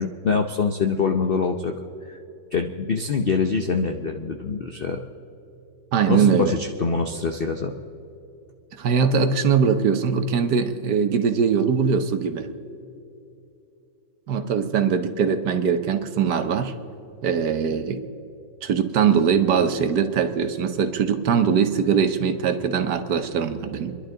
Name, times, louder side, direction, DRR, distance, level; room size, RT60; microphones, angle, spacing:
voice 1, 0.0-1.7 2.1-2.2 2.5-5.0 6.1-7.7, left 5 dB, 60° left, 5 dB, 0.6 m, -24 dB
voice 2, 5.9-6.6 8.8-12.5 14.3-16.7 17.2-18.0 18.6-23.9, right 6 dB, 65° right, 8 dB, 1.5 m, -21 dB
29.0 x 11.5 x 3.8 m, 2.8 s
omnidirectional pair, 2.0 m